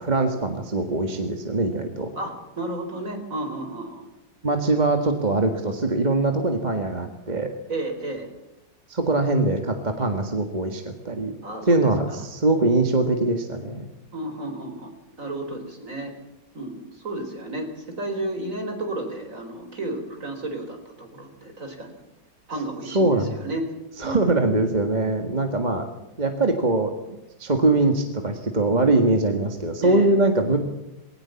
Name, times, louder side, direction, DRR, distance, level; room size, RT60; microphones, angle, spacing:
voice 1, 0.0-2.1 4.4-7.5 8.9-11.3 11.7-13.9 22.9-23.3 24.0-25.8 26.2-30.6, right 2 dB, 25° right, 5 dB, 1.8 m, -22 dB
voice 2, 2.1-4.1 7.7-8.3 11.4-12.2 14.1-16.1 16.5-22.0 22.5-23.7 24.0-24.2 29.8-30.1, right 1 dB, 45° right, 5 dB, 4.5 m, -32 dB
21.0 x 18.0 x 7.2 m, 0.93 s
omnidirectional pair, 2.0 m